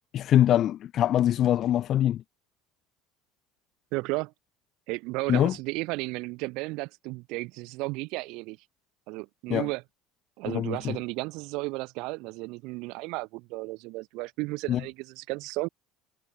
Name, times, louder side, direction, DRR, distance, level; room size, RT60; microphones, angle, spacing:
voice 1, 0.1-2.2 5.3-5.5 9.5-9.7 10.4-11.0 14.7-14.8, left 11 dB, 45° left, 1.3 m, -23 dB
voice 2, 3.9-4.3 4.9-8.6 9.1-9.8 10.4-15.7, right 24 dB, 70° right, 2.8 m, -34 dB
cardioid pair, 125°, 0 cm